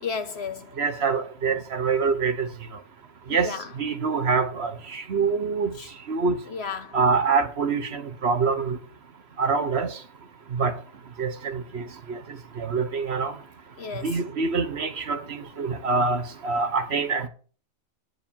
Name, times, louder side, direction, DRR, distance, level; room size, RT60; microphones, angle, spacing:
voice 1, 0.0-0.8 3.3-3.7 5.7-5.9 6.5-7.0 13.8-14.2, left 5 dB, 60° left, 0.9 m, -33 dB
voice 2, 0.8-2.5 3.3-5.7 6.1-6.4 6.9-8.8 9.4-9.9 10.5-10.8 11.2-11.8 12.6-13.3 14.0-17.3, right 4 dB, 55° right, 1.2 m, -25 dB
8.7 x 4.9 x 7.1 m
omnidirectional pair, 1.4 m